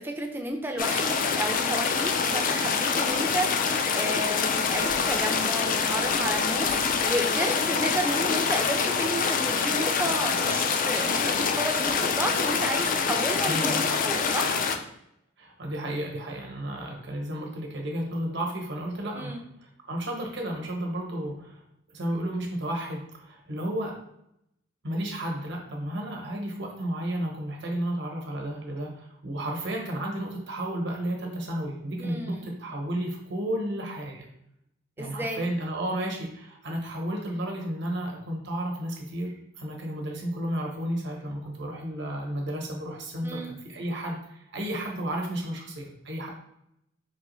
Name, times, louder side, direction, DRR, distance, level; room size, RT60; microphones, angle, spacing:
voice 1, 0.0-13.8 14.0-14.6 19.1-19.4 32.0-32.4 35.0-35.5 43.2-43.5, right 1 dB, 10° right, 3 dB, 0.5 m, -32 dB
sound 1, 0.8-14.8, left 5 dB, 45° left, 0.4 m, -25 dB
voice 2, 13.4-13.9 15.4-21.6 21.9-23.9 24.8-34.3 35.0-46.3, right 1 dB, 65° right, 0 dB, 1.0 m, -32 dB
4.7 x 3.0 x 3.1 m, 0.79 s
head